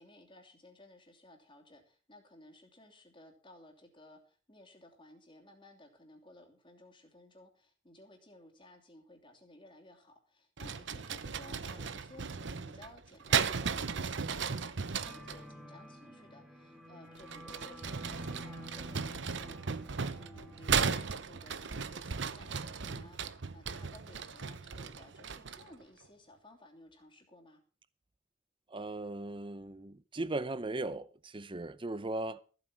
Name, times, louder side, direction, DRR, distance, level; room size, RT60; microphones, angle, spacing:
voice 1, 0.0-27.6, left 1 dB, 25° left, 2.9 m, -57 dB
sound 1, 10.6-15.4 17.2-25.7, right 6 dB, 65° right, 0.8 m, -36 dB
sound 2, 15.0-20.6, equal, 5° right, 2.3 m, -49 dB
voice 2, 28.7-32.4, right 2 dB, 25° right, 0.7 m, -38 dB
14.5 x 8.2 x 6.2 m
head